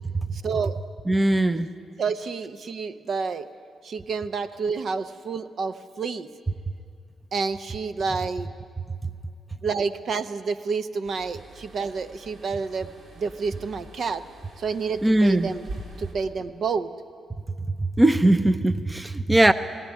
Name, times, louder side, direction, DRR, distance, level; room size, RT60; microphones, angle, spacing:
voice 1, 0.3-0.7 2.0-3.5 3.8-6.3 7.3-8.5 9.6-12.9 13.2-14.2 14.6-15.7 16.0-16.9, right 5 dB, 55° right, 10 dB, 0.9 m, -29 dB
voice 2, 1.1-1.7 15.0-15.5 17.8-19.5, right 1 dB, 15° right, 11 dB, 0.6 m, -20 dB
sound 1, 11.0-16.1, right 1 dB, 75° right, 2.9 m, -44 dB
18.0 x 17.5 x 10.0 m, 2.2 s
cardioid pair, 105°, 0 cm